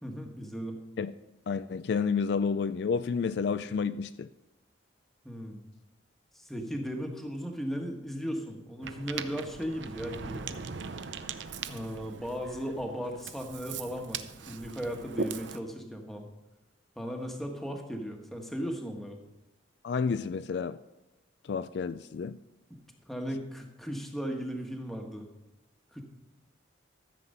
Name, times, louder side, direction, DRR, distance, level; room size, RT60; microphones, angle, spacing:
voice 1, 0.0-0.8 5.2-5.6 6.3-10.6 11.7-16.3 17.0-19.2 23.1-25.3 25.9-26.0, equal, ahead, 1.3 m, -36 dB
voice 2, 1.5-4.3 19.8-20.8 21.4-22.4, left 5 dB, 60° left, 0.3 m, -30 dB
Ocean, 8.8-15.6, right 5 dB, 70° right, 0.6 m, -40 dB
13.5 x 7.6 x 5.4 m
head